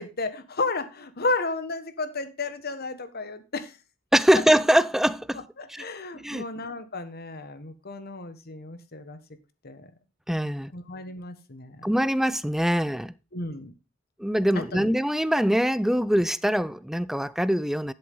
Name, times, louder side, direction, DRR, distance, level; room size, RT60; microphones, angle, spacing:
voice 1, 0.0-3.7 5.6-9.2 9.6-9.9 10.7-11.9 13.3-13.7 14.7-14.9, left 3 dB, 50° left, 1.5 m, -33 dB
voice 2, 4.1-5.8 6.2-6.4 10.3-10.7 11.8-13.1 14.2-17.9, equal, ahead, 0.4 m, -23 dB
10.5 x 7.7 x 3.6 m
head